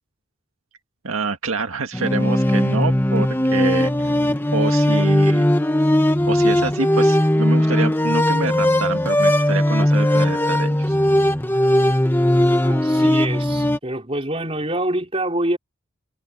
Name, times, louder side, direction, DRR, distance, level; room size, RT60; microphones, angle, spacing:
voice 1, 1.0-4.2 4.5-5.5 6.3-11.0, right 3 dB, 80° right, 1.8 m, -26 dB
sound 1, 1.9-13.8, left 1 dB, 10° left, 1.1 m, -18 dB
voice 2, 12.6-15.6, right 1 dB, 25° right, 4.2 m, -26 dB
head